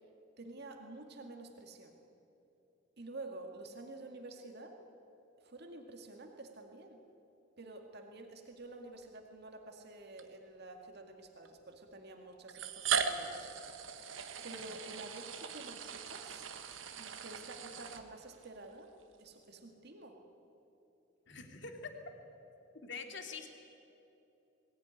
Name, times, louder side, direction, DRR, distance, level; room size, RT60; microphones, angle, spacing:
voice 1, 0.4-2.0 3.0-4.8 5.4-7.0 7.6-13.5 14.4-16.5 17.0-18.9 19.2-20.2, right 2 dB, 55° right, 3 dB, 2.0 m, -49 dB
sound 1, 9.0-9.2 10.2-10.3 11.5-11.6 12.5-18.5, right 6 dB, 80° right, 1.4 m, -39 dB
voice 2, 21.3-21.9 22.7-23.5, left 4 dB, 65° left, 4 dB, 2.5 m, -45 dB
21.5 x 17.5 x 9.9 m, 2.9 s
head